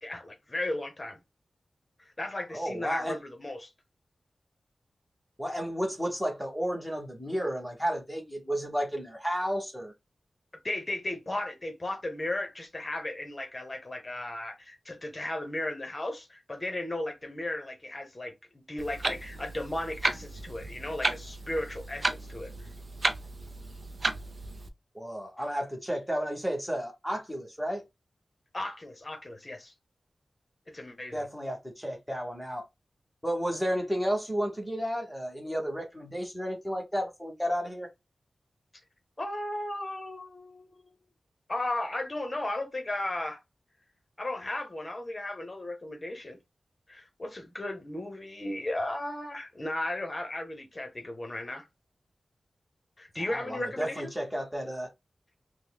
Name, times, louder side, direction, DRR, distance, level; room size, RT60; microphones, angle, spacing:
voice 1, 0.0-1.2 2.0-3.7 10.6-22.7 28.5-29.7 30.7-31.2 39.2-41.0 41.5-43.4 44.2-46.4 46.9-51.7 53.0-54.1, left 1 dB, 25° left, 0.9 m, -35 dB
voice 2, 2.5-3.2 5.4-9.9 24.9-27.8 31.1-32.6 33.2-37.9 53.2-54.9, equal, ahead, 1.1 m, -32 dB
Clock, 18.8-24.7, right 2 dB, 40° right, 0.5 m, -34 dB
5.3 x 2.1 x 2.2 m
wide cardioid pair, 130°, 0 cm